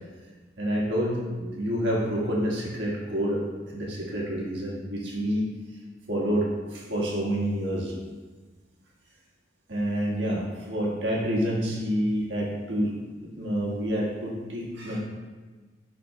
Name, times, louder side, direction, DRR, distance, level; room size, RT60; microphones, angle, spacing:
voice 1, 0.6-3.4 3.7-5.5 6.1-7.9 9.7-12.9 13.2-15.0, equal, 75° right, -4 dB, 1.5 m, -28 dB
11.0 x 4.3 x 2.2 m, 1.3 s
head